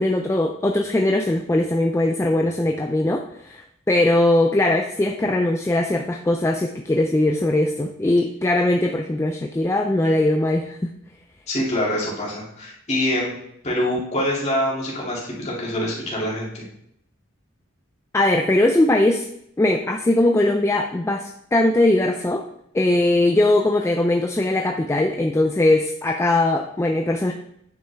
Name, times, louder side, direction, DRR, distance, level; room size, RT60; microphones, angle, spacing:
voice 1, 0.0-10.8 18.1-19.3 19.6-22.5 22.7-27.3, left 1 dB, 15° left, 4 dB, 0.3 m, -20 dB
voice 2, 11.5-13.3 13.6-16.7, left 1 dB, 35° left, -5 dB, 2.4 m, -25 dB
9.0 x 5.5 x 3.4 m, 0.74 s
head